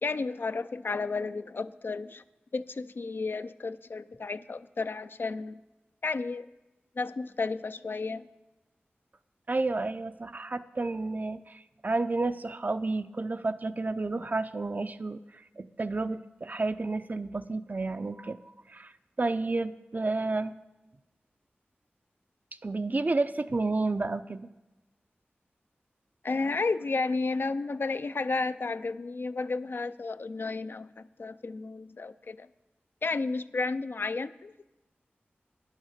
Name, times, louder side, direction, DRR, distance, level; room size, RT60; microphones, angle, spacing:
voice 1, 0.0-2.2 2.5-5.6 6.0-6.5 7.0-8.3 26.2-32.5 33.0-34.7, left 3 dB, 60° left, 13 dB, 0.4 m, -32 dB
voice 2, 9.5-18.4 18.7-18.9 19.2-20.5 22.6-24.4, right 3 dB, 45° right, 11 dB, 0.5 m, -31 dB
10.0 x 6.4 x 6.6 m, 1.0 s
cardioid pair, 50°, 4 cm